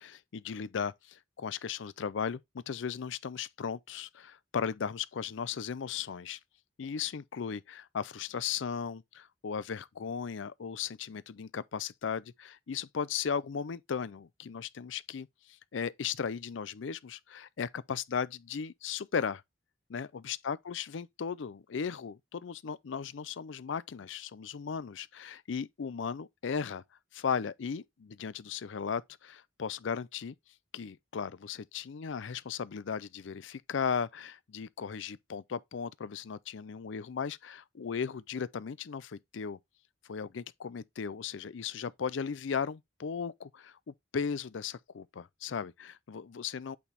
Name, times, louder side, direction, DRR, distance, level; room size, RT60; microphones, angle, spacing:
voice 1, 0.0-6.4 6.8-19.4 19.9-26.8 27.1-30.3 30.7-39.6 40.1-46.8, left 6 dB, 70° left, 0.5 m, -36 dB
8.4 x 3.4 x 4.1 m
head